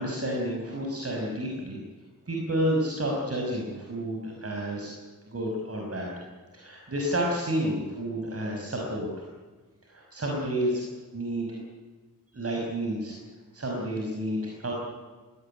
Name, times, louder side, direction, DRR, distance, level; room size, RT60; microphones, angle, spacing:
voice 1, 0.0-1.8 2.3-5.0 5.3-6.1 6.5-9.1 9.9-10.8 11.1-11.6 12.3-13.2 13.5-14.7, right 1 dB, 45° right, -1 dB, 5.6 m, -30 dB
21.0 x 18.5 x 9.9 m, 1.3 s
wide cardioid pair, 120°, 32 cm